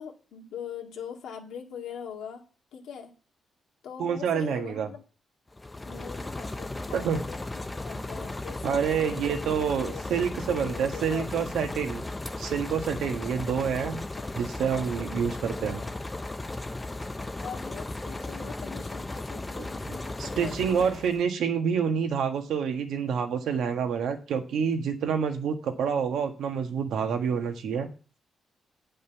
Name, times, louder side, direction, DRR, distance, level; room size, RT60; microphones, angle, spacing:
voice 1, 0.0-2.4 2.7-3.1 3.8-5.0 5.8-7.4 7.8-9.5 9.8-11.7 13.0-13.5 14.2-14.3 15.5-15.9 17.4-20.9, left 7 dB, 90° left, 2 dB, 2.0 m, -42 dB
voice 2, 4.0-4.9 6.9-7.2 8.6-12.0 12.4-14.0 14.4-15.8 20.2-27.9, right 7 dB, 80° right, 5 dB, 1.6 m, -28 dB
sound 1, 5.5-21.3, left 2 dB, 15° left, 0.7 m, -36 dB
9.1 x 5.5 x 6.8 m, 0.36 s
cardioid pair, 150°, 0 cm